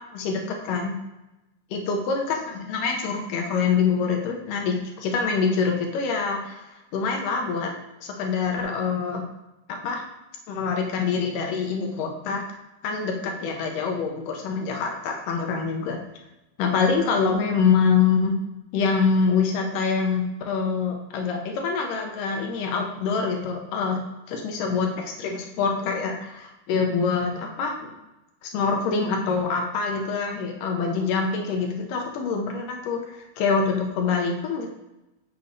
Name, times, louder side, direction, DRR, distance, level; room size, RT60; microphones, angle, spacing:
voice 1, 0.1-0.9 1.7-7.7 8.0-9.2 9.7-10.0 10.5-12.4 12.8-16.0 16.6-18.3 18.7-24.0 24.3-27.9 28.4-34.7, left 5 dB, 75° left, 2 dB, 2.1 m, -25 dB
6.9 x 6.6 x 2.6 m, 0.97 s
omnidirectional pair, 4.3 m